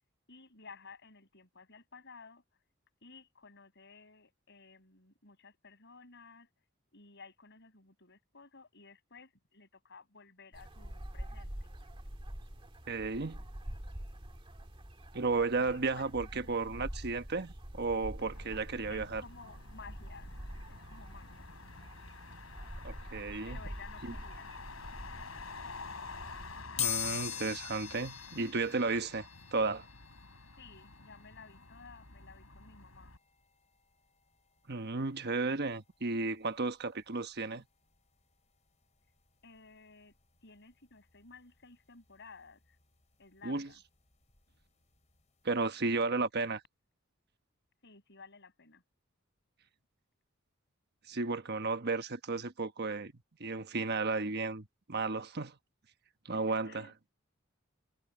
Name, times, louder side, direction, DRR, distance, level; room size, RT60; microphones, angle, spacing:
voice 1, 0.3-2.4 3.0-6.5 6.9-11.7 15.6-16.7 18.9-20.3 20.7-21.5 23.4-24.5 30.6-33.1 39.4-40.1 40.4-42.8 43.2-43.8 47.8-48.8 56.3-57.1, left 4 dB, 60° left, 7.0 m, -55 dB
sound 1, 10.5-26.6, equal, 25° right, 1.9 m, -46 dB
voice 2, 12.9-13.4 15.1-19.2 22.8-23.6 24.0-24.1 26.8-29.9 34.7-37.6 43.4-43.7 45.4-46.6 51.1-53.1 53.4-55.6 56.2-56.9, right 3 dB, 55° right, 1.2 m, -34 dB
Motor vehicle (road), 18.2-33.2, left 3 dB, 90° left, 4.5 m, -50 dB
sound 2, 26.8-37.5 37.9-38.0 39.2-39.3 39.6-41.6 42.0-44.6 45.0-45.2 45.5-45.6, left 10 dB, 35° left, 3.8 m, -43 dB
head